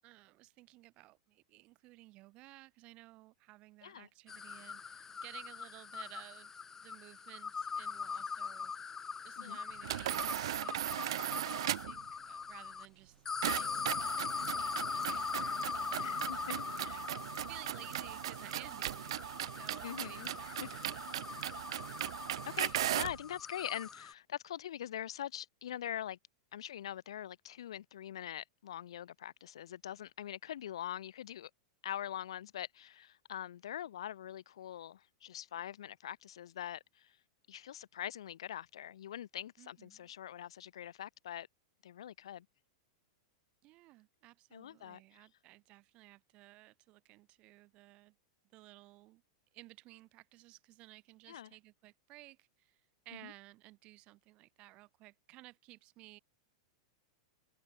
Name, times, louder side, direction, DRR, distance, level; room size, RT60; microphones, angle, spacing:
voice 1, 0.0-6.5 6.8-8.9 9.2-21.9 39.6-40.1 43.6-48.1 48.5-49.2 49.5-52.8 53.0-56.2, right 19 dB, 40° right, 7.9 m, -56 dB
sound 1, 4.3-12.9 13.3-24.1, left 5 dB, 15° left, 1.3 m, -42 dB
sound 2, 9.8-12.0 13.4-23.2, right 13 dB, 75° right, 0.7 m, -38 dB
voice 2, 16.0-17.0 19.8-20.7 22.5-26.2 26.5-31.5 31.8-37.2 37.5-41.5 41.8-42.5 44.5-45.3 51.3-51.5 53.2-53.3, left 11 dB, 85° left, 1.0 m, -43 dB
hypercardioid pair, 130°, 3 cm